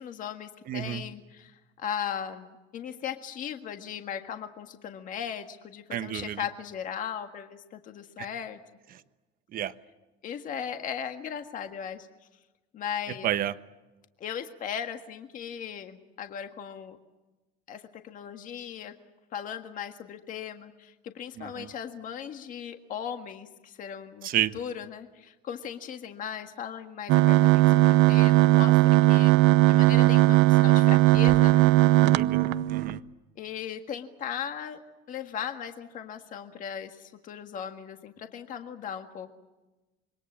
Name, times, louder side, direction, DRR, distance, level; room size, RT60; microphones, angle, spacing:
voice 1, 0.0-8.6 10.2-12.1 12.7-13.3 14.2-17.0 17.7-18.9 19.3-24.3 24.5-31.7 33.3-34.8 35.1-39.3, left 8 dB, 45° left, 6 dB, 1.7 m, -37 dB
voice 2, 0.7-1.0 5.9-6.4 9.5-9.7 13.2-13.5 21.4-21.7 24.2-24.5 32.0-33.0, right 12 dB, 50° right, 12 dB, 1.2 m, -30 dB
sound 1, 27.1-33.0, right 18 dB, 80° right, 0.9 m, -19 dB
26.5 x 23.0 x 7.5 m, 1.1 s
cardioid pair, 145°, 19 cm